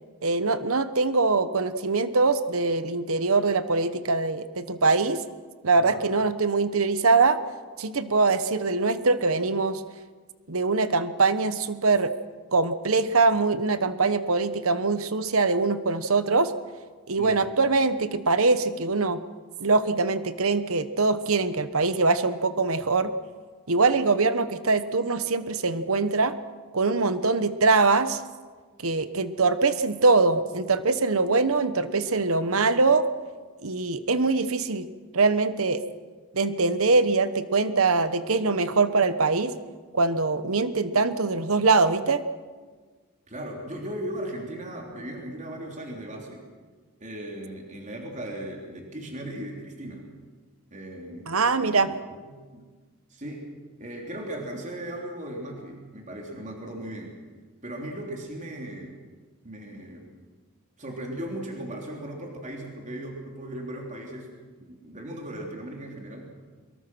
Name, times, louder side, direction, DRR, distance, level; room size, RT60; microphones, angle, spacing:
voice 1, 0.2-5.2 5.6-7.4 7.8-9.8 10.5-12.1 12.5-16.5 17.1-19.2 19.6-23.1 23.7-26.3 26.7-28.2 28.8-33.1 33.6-34.9 35.1-35.8 36.3-39.5 39.9-42.2 51.3-51.9, right 3 dB, 70° right, 12 dB, 1.1 m, -23 dB
voice 2, 43.3-46.4 47.0-50.1 50.7-51.3 51.6-52.7 53.1-53.5 53.8-57.1 57.6-58.9 59.4-60.1 60.8-64.3 64.7-66.3, right 1 dB, 35° right, 0 dB, 3.4 m, -37 dB
24.5 x 22.5 x 6.2 m, 1.5 s
head